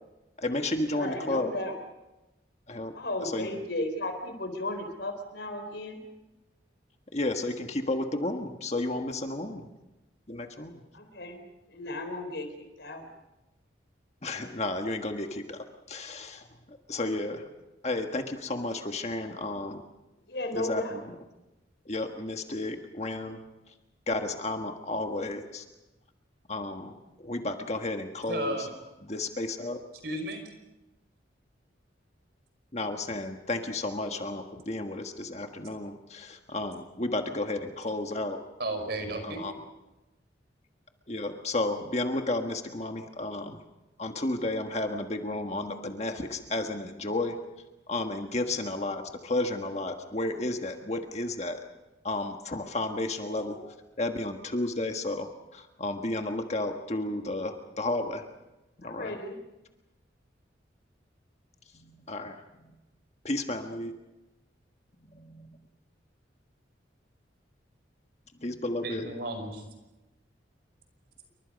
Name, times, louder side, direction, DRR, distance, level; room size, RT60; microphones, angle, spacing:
voice 1, 0.4-1.5 2.7-2.9 3.2-3.6 7.1-9.6 10.3-10.8 14.2-17.4 17.8-19.8 20.5-21.1 21.8-23.4 24.1-25.6 26.5-28.6 29.1-29.8 32.7-38.4 39.2-39.5 41.1-43.6 44.0-47.4 47.9-51.6 52.0-58.2 58.8-59.2 61.7-62.4 63.2-63.9 65.1-65.5 68.4-69.1, left 2 dB, 35° left, 5 dB, 1.5 m, -32 dB
voice 2, 0.9-1.8 2.9-6.0 10.9-11.4 11.7-12.5 12.8-13.0 20.3-21.0 48.4-48.6 58.8-59.4, left 1 dB, 70° left, 7 dB, 4.0 m, -35 dB
voice 3, 28.3-28.7 30.0-30.5 38.6-39.4 68.8-69.6, right 1 dB, 60° right, 6 dB, 5.3 m, -33 dB
28.5 x 24.0 x 5.3 m, 1.0 s
head